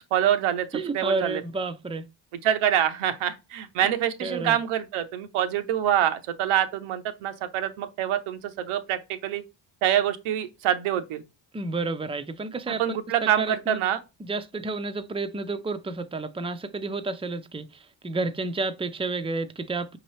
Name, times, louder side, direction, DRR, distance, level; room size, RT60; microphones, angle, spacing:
voice 1, 0.1-1.4 2.4-9.4 9.8-11.2 12.8-14.0, right 10 dB, 80° right, 0.8 m, -25 dB
voice 2, 0.7-2.1 3.8-3.9 4.2-4.6 11.5-13.8 14.2-20.0, right 3 dB, 10° right, 0.6 m, -31 dB
5.2 x 2.9 x 3.2 m
supercardioid pair, 50°, 49 cm